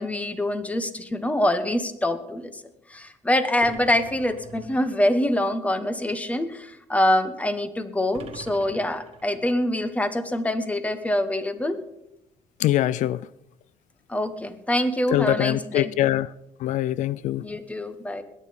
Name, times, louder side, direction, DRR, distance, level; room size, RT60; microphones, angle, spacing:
voice 1, 0.0-2.6 2.9-11.8 14.1-15.9 17.4-18.2, left 1 dB, 10° left, 1.2 m, -25 dB
sound 1, 3.6-5.1 8.1-9.6, right 7 dB, 50° right, 1.7 m, -44 dB
voice 2, 12.6-13.3 15.1-16.3 16.6-17.5, left 14 dB, 70° left, 0.4 m, -23 dB
21.0 x 8.8 x 5.3 m
cardioid pair, 130°, 13 cm